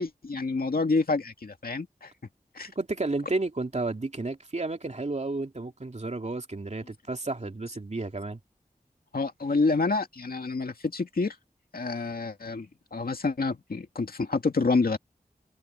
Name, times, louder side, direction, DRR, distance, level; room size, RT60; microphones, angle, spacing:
voice 1, 0.0-2.1 2.5-2.7 9.1-11.4 11.7-15.0, left 3 dB, 80° left, 2.3 m, -28 dB
voice 2, 2.8-8.4, right 2 dB, 50° right, 2.8 m, -32 dB
open air
wide cardioid pair, 60°, 15 cm